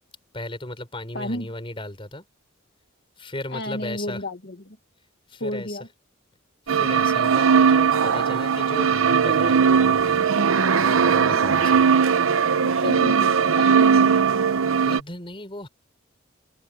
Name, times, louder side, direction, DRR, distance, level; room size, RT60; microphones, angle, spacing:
voice 1, 0.3-2.2 3.2-4.2 5.3-5.8 6.7-10.3 10.8-11.8 14.7-15.7, left 1 dB, 25° left, 5.1 m, -36 dB
voice 2, 1.1-1.5 3.5-4.8 5.4-5.9 11.3-11.6 12.6-14.3, left 1 dB, 55° left, 2.0 m, -32 dB
sound 1, 6.7-15.0, right 6 dB, 85° right, 0.8 m, -19 dB
open air
head